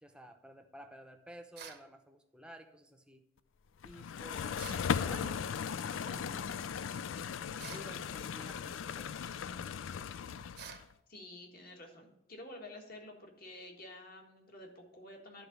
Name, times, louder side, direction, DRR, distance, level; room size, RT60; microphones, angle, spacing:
voice 1, 0.0-3.2 3.8-5.4 5.8-6.6 7.7-9.4, equal, 5° right, 6 dB, 0.7 m, -53 dB
sound 1, 1.5-1.9 4.6-4.9 7.6-7.9 10.6-10.9, right 7 dB, 55° right, 0.8 m, -48 dB
sound 2, 3.8-10.8, left 7 dB, 80° left, 0.4 m, -37 dB
voice 2, 11.1-15.5, left 1 dB, 50° left, 1 dB, 1.7 m, -50 dB
11.0 x 3.9 x 6.7 m, 0.86 s
head